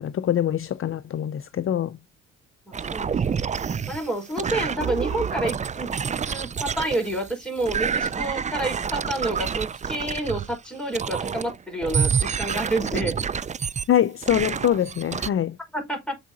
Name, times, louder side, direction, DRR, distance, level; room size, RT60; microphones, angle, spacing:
voice 1, 0.0-2.0 13.9-15.6, left 10 dB, 45° left, 0.6 m, -24 dB
voice 2, 2.7-3.5 3.9-5.9 6.3-13.2 15.7-16.2, right 1 dB, 5° left, 5.3 m, -29 dB
sound 1, 2.7-7.3 7.6-10.6 10.9-11.6 11.8-13.8 14.2-15.3, right 6 dB, 25° right, 0.4 m, -28 dB
7.2 x 4.8 x 4.0 m
cardioid pair, 90°, 30 cm